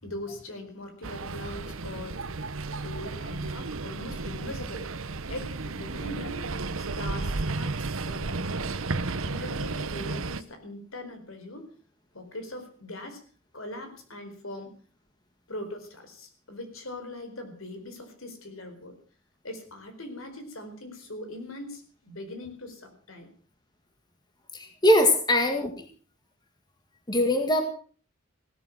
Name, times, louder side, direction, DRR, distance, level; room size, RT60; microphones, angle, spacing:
voice 1, 0.0-2.2 2.8-4.9 5.3-6.4 6.8-11.7 12.1-13.2 13.5-14.8 15.5-18.9 19.4-23.3, left 1 dB, 70° left, 7 dB, 4.5 m, -41 dB
sound 1, 1.0-10.4, right 3 dB, 70° right, 1.0 m, -33 dB
voice 2, 24.5-25.7 27.1-27.6, left 1 dB, 20° left, 6 dB, 2.0 m, -22 dB
17.0 x 13.0 x 5.9 m, 0.42 s
head